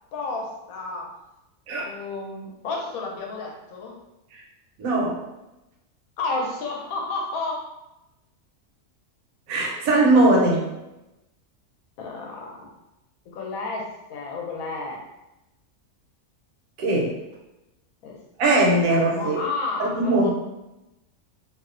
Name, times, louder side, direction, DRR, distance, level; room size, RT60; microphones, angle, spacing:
voice 1, 0.1-1.1 1.8-4.0 6.2-7.7 10.5-10.6 12.0-12.7 13.3-15.0 18.0-18.2 18.9-20.3, left 3 dB, 75° left, 0 dB, 1.0 m, -31 dB
voice 2, 4.8-5.2 9.5-10.6 16.8-17.1 18.4-19.4 19.8-20.3, right 2 dB, 80° right, -1 dB, 1.0 m, -20 dB
2.7 x 2.0 x 2.4 m, 0.96 s
omnidirectional pair, 1.5 m